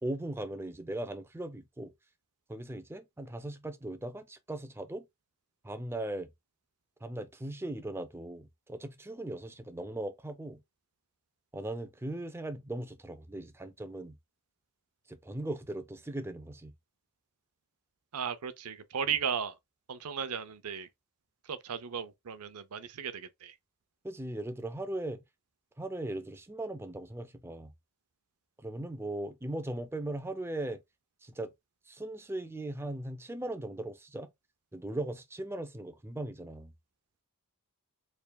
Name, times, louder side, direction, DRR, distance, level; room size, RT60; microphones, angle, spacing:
voice 1, 0.0-1.9 2.5-5.1 5.6-6.3 7.0-10.6 11.5-14.2 15.1-16.7 19.0-19.2 24.0-25.2 25.8-27.7 28.6-30.8 31.2-31.5 31.9-34.3 34.7-36.7, right 1 dB, 10° right, 0.5 m, -38 dB
voice 2, 18.1-19.5 19.9-20.9 21.5-23.5, right 7 dB, 90° right, 0.6 m, -35 dB
4.6 x 3.4 x 2.3 m
head